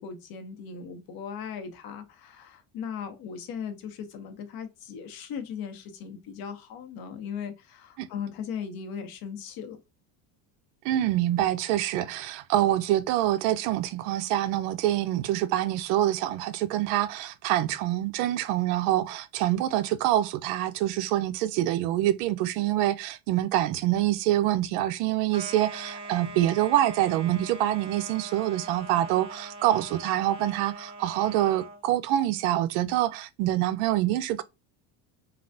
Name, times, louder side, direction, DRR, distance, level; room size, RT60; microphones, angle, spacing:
voice 1, 0.0-9.8, left 7 dB, 55° left, 0.9 m, -38 dB
voice 2, 10.8-34.4, right 13 dB, 80° right, 0.5 m, -26 dB
sound 1, 25.3-31.8, right 3 dB, 15° right, 0.3 m, -42 dB
3.3 x 2.3 x 2.6 m
cardioid pair, 130°, 44 cm